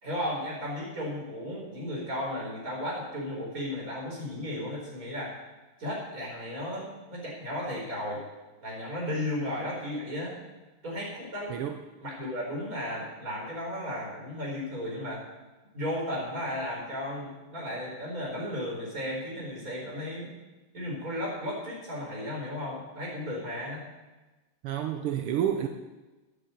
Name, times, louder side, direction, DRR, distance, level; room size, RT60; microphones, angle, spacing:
voice 1, 0.0-5.3 5.8-8.2 8.6-10.4 10.8-11.5 12.0-15.2 15.7-20.3 20.7-23.8, left 1 dB, 40° right, -3 dB, 5.1 m, -34 dB
voice 2, 24.6-25.7, right 10 dB, 85° right, 6 dB, 1.7 m, -29 dB
10.5 x 9.1 x 8.4 m, 1.1 s
omnidirectional pair, 2.4 m